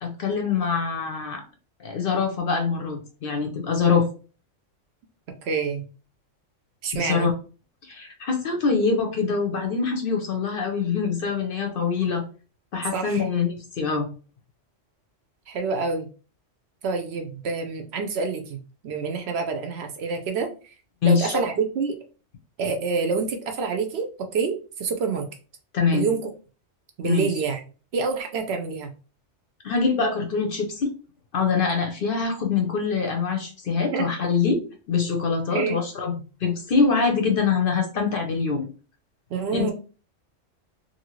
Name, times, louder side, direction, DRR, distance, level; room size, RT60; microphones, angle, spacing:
voice 1, 0.0-1.4 1.8-4.1 6.9-7.3 7.9-12.2 12.7-14.1 21.0-21.4 25.7-26.1 27.0-27.3 29.6-30.9 31.3-34.6 34.9-36.1 36.4-38.7 39.5-39.7, left 5 dB, 55° left, 3 dB, 0.7 m, -24 dB
voice 2, 5.4-5.8 6.8-7.3 12.9-13.3 15.5-16.1 16.8-18.6 18.8-20.5 21.0-22.0 22.6-25.3 25.9-26.3 27.0-27.6 27.9-28.9 33.9-34.1 35.5-35.8 39.3-39.7, right 5 dB, 65° right, 5 dB, 0.8 m, -27 dB
2.7 x 2.7 x 2.9 m, 0.36 s
omnidirectional pair, 1.3 m